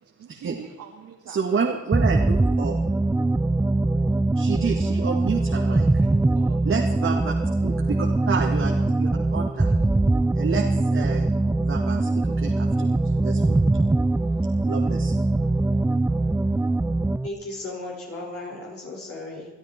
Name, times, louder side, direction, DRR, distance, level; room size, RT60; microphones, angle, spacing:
voice 1, 0.0-1.7 5.7-6.6 7.0-7.7 9.6-9.8, right 7 dB, 75° right, 1 dB, 2.2 m, -45 dB
voice 2, 1.3-2.8 4.4-5.9 6.6-7.3 7.6-9.7 10.3-11.3 11.6-13.7 14.6-15.2, right 5 dB, 45° right, 0 dB, 2.2 m, -29 dB
sound 1, 1.9-17.3, right 2 dB, 10° right, 0.4 m, -22 dB
voice 3, 17.2-19.5, left 2 dB, 50° left, -3 dB, 5.8 m, -35 dB
23.5 x 12.5 x 4.5 m, 1.1 s
cardioid pair, 90°, 30 cm